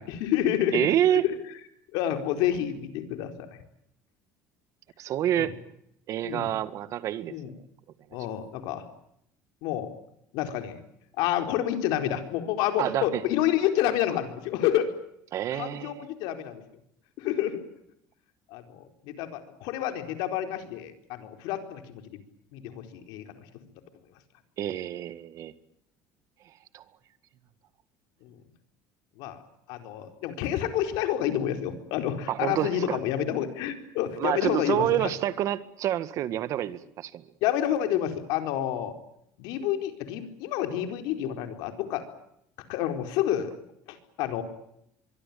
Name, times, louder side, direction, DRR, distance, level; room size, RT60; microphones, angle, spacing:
voice 1, 0.0-0.9 1.2-1.3 1.9-3.6 5.4-5.5 6.2-6.5 7.3-7.5 8.1-8.8 9.6-9.9 10.3-10.8 11.2-14.9 15.5-16.6 17.2-17.6 18.5-22.2 22.5-23.3 28.2-28.4 29.2-29.4 29.7-35.1 37.4-38.9 39.4-42.1 42.7-43.5 43.9-44.4, left 11 dB, 75° left, 7 dB, 4.4 m, -29 dB
voice 2, 0.7-1.2 5.0-5.5 6.1-7.3 12.8-13.2 15.3-16.1 24.6-25.5 26.7-26.8 32.3-33.0 34.2-37.2, right 11 dB, 45° right, 13 dB, 1.9 m, -27 dB
24.5 x 23.0 x 8.7 m, 0.76 s
cardioid pair, 160°, 7 cm